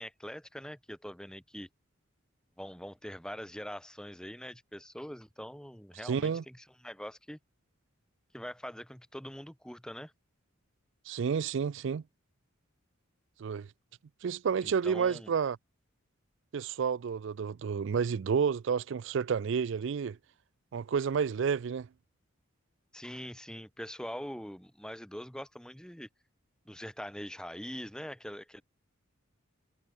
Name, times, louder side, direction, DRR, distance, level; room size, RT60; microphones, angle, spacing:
voice 1, 0.0-1.7 2.6-7.4 8.3-10.1 14.6-15.3 22.9-26.1 26.7-28.6, equal, 5° left, 2.6 m, -43 dB
voice 2, 6.0-6.4 11.1-12.0 13.4-13.7 14.2-15.6 16.5-20.2 20.7-21.9, right 6 dB, 60° right, 0.4 m, -30 dB
head